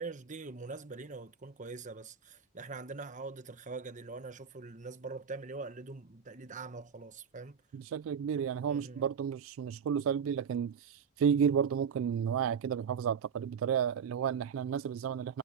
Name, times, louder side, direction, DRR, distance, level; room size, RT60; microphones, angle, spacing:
voice 1, 0.0-7.6 8.6-9.0, right 3 dB, 40° right, 1.1 m, -43 dB
voice 2, 7.7-15.4, right 8 dB, 70° right, 0.3 m, -32 dB
head